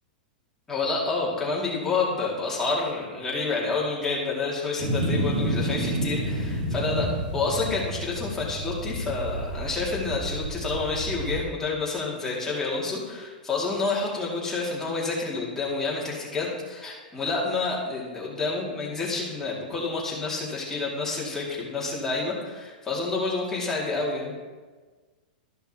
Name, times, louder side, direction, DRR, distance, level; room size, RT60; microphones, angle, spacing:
voice 1, 0.7-24.3, left 3 dB, 10° left, -5 dB, 2.2 m, -29 dB
sound 1, 4.8-11.4, right 1 dB, 75° right, 1.9 m, -30 dB
13.5 x 5.7 x 2.9 m, 1.4 s
hypercardioid pair, 145°, 5 cm